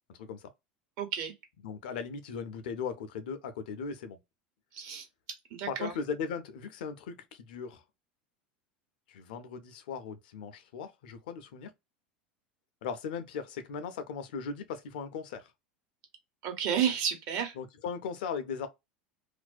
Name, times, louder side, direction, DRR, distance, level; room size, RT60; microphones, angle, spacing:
voice 1, 0.1-0.5 1.6-4.2 5.7-7.8 9.1-11.7 12.8-15.5 17.6-18.7, left 6 dB, 70° left, 0.5 m, -38 dB
voice 2, 1.0-1.3 4.7-5.1 5.5-5.9 16.4-17.5, right 8 dB, 55° right, 1.0 m, -31 dB
2.5 x 2.1 x 2.4 m
hypercardioid pair, 80°, 5 cm